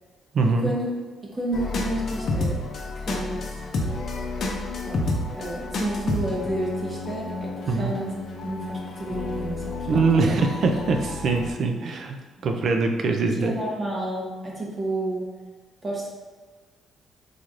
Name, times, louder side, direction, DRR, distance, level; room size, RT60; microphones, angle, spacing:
voice 1, 0.3-0.7 7.7-7.9 9.9-12.2 12.4-13.5, right 3 dB, 60° right, 4 dB, 0.4 m, -23 dB
voice 2, 1.2-2.6 3.0-3.5 4.9-5.1 5.3-8.1 8.4-10.3 12.4-12.5 13.4-15.2 15.8-16.1, right 1 dB, 30° right, -3 dB, 1.0 m, -30 dB
sound 1, 1.5-11.5, left 2 dB, 60° left, 0.6 m, -30 dB
4.0 x 3.1 x 2.4 m, 1.4 s
cardioid pair, 90°, 0 cm